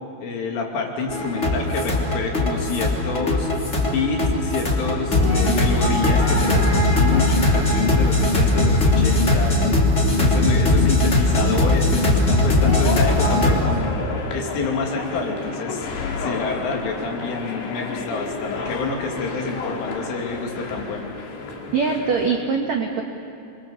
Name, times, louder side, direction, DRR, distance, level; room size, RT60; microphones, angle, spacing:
voice 1, 0.2-3.5 3.8-9.6 10.1-15.9 16.2-21.1, left 4 dB, 80° left, 1 dB, 5.1 m, -28 dB
sound 1, 1.1-13.6, left 2 dB, 20° left, 2.1 m, -19 dB
sound 2, 12.3-22.4, left 4 dB, 65° left, 4.3 m, -31 dB
voice 2, 21.7-23.0, right 5 dB, 75° right, 1 dB, 1.6 m, -22 dB
27.0 x 24.0 x 7.3 m, 2.8 s
omnidirectional pair, 5.6 m